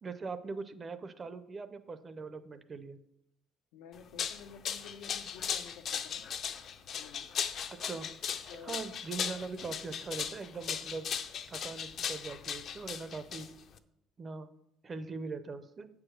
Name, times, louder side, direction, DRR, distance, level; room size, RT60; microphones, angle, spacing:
voice 1, 0.0-3.0 7.8-8.1 8.6-11.1 11.5-13.5 14.2-14.5 14.8-15.9, right 4 dB, 25° right, 12 dB, 0.5 m, -41 dB
voice 2, 3.7-6.2 6.9-7.3 8.5-8.8, left 6 dB, 85° left, 7 dB, 0.8 m, -51 dB
sound 1, 3.9-13.8, left 7 dB, 40° left, 0.5 m, -37 dB
8.2 x 4.8 x 6.5 m, 0.82 s
cardioid pair, 145°, 0 cm